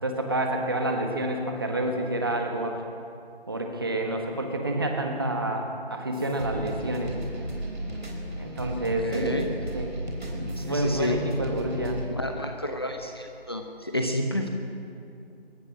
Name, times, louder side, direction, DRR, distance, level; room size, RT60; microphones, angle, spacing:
voice 1, 0.0-2.8 3.5-7.1 8.4-9.9 10.3-12.0, right 1 dB, 25° right, 3 dB, 1.6 m, -28 dB
sound 1, 6.1-12.1, right 1 dB, 50° right, 4.1 m, -35 dB
voice 2, 8.7-9.5 10.6-11.1 12.2-14.5, left 1 dB, 25° left, 3 dB, 1.0 m, -30 dB
22.0 x 19.0 x 6.3 m, 2.5 s
figure-of-eight pair, 170°, 31 cm